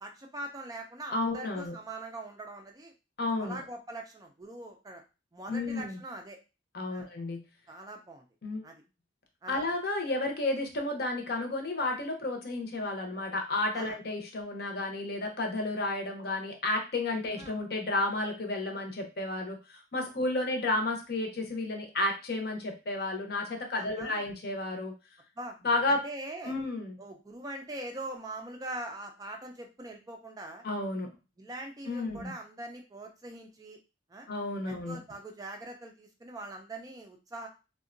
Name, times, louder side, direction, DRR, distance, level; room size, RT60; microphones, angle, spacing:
voice 1, 0.0-2.9 3.3-5.0 5.3-6.4 6.9-7.1 7.7-8.2 8.6-8.7 9.4-9.6 13.7-14.0 17.4-17.6 23.8-24.3 25.4-25.6 25.9-26.6 27.0-30.6 31.4-33.8 34.1-34.3 34.6-37.5, right 2 dB, 20° right, 3 dB, 0.3 m, -42 dB
voice 2, 1.1-1.7 3.2-3.6 5.5-6.0 6.7-7.4 8.4-8.6 9.5-24.9 25.6-26.0 26.4-27.0 30.6-31.1 31.9-32.3 34.3-35.0, left 2 dB, 55° left, 3 dB, 0.7 m, -32 dB
3.6 x 2.1 x 2.5 m, 0.30 s
head